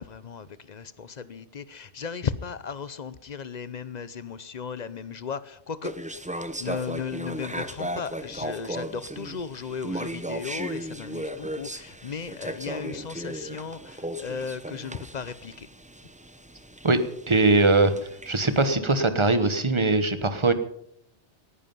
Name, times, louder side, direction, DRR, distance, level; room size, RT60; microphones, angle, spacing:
voice 1, 0.0-5.9 6.6-15.7, left 6 dB, 45° left, 15 dB, 0.7 m, -36 dB
sound 1, 5.8-18.7, right 1 dB, 10° right, 0.6 m, -36 dB
voice 2, 17.3-17.9 18.3-20.5, right 3 dB, 25° right, 10 dB, 1.1 m, -21 dB
18.5 x 11.0 x 5.5 m, 0.72 s
omnidirectional pair, 1.2 m